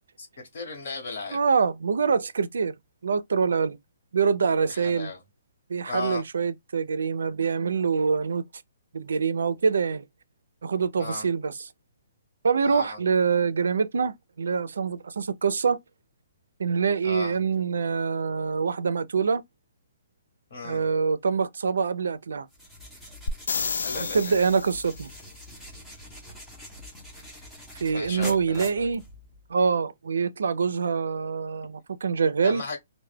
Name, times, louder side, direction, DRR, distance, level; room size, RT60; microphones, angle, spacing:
voice 1, 0.5-1.4 4.7-5.2 5.9-6.2 11.0-11.3 12.6-13.0 17.0-17.4 20.5-20.9 23.8-24.3 27.9-28.9 32.4-32.8, left 4 dB, 45° left, 1.1 m, -35 dB
voice 2, 1.3-2.7 3.0-3.8 4.1-5.1 5.7-8.4 8.9-10.0 10.6-11.5 12.4-15.8 16.6-19.4 20.6-22.5 24.0-25.1 27.8-29.0 29.5-32.6, right 5 dB, 85° right, 0.4 m, -25 dB
sound 1, 22.5-29.5, equal, 5° left, 0.5 m, -45 dB
sound 2, 23.3-25.1 28.9-29.0, left 4 dB, 80° left, 0.3 m, -31 dB
2.2 x 2.1 x 3.2 m
hypercardioid pair, 175°, 0 cm